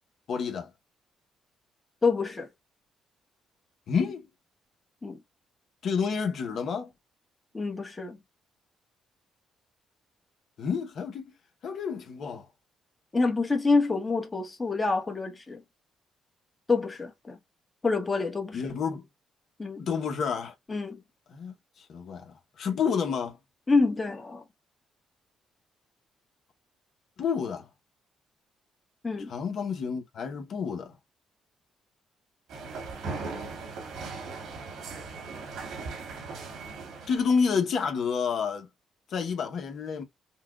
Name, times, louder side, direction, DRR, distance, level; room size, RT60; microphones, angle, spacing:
voice 1, 0.3-0.7 3.9-4.3 5.8-6.9 10.6-11.3 11.6-12.5 18.5-19.0 19.8-20.5 21.3-23.4 27.2-27.7 29.3-31.0 37.1-38.7 39.1-40.0, left 6 dB, 65° left, 0.9 m, -29 dB
voice 2, 2.0-2.5 5.0-5.2 7.5-8.2 13.1-15.6 16.7-17.4 17.8-18.6 19.6-19.8 20.7-21.0 23.7-24.4 29.0-29.3, left 3 dB, 20° left, 1.1 m, -27 dB
sound 1, 32.5-37.4, right 4 dB, 85° right, 2.0 m, -38 dB
5.7 x 2.3 x 2.3 m
cardioid pair, 90°, 0 cm